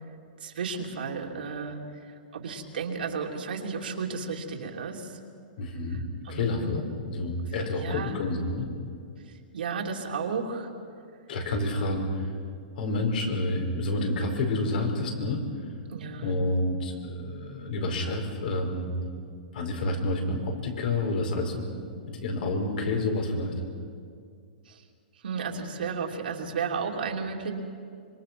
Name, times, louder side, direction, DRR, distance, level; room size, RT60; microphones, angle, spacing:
voice 1, 0.4-1.8 2.1-5.2 5.9-6.7 7.7-8.2 9.2-10.7 15.9-16.3 24.6-24.8 25.2-27.5, right 5 dB, 80° right, 1 dB, 3.0 m, -33 dB
voice 2, 5.6-8.7 11.3-12.3 12.7-15.5 16.2-18.9 19.5-21.7 22.1-23.6, left 2 dB, 65° left, 3 dB, 4.9 m, -29 dB
25.5 x 23.0 x 6.1 m, 2.3 s
hypercardioid pair, 145°, 5 cm